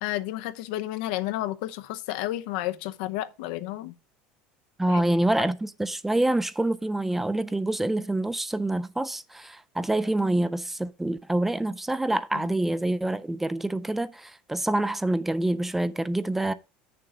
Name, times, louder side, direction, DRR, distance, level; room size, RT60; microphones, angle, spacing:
voice 1, 0.0-4.0 4.9-5.0 5.4-5.5 12.3-12.5, left 15 dB, 80° left, 0.7 m, -31 dB
voice 2, 4.8-16.5, right 1 dB, 5° right, 0.3 m, -26 dB
9.0 x 6.8 x 3.7 m
cardioid pair, 170°, 4 cm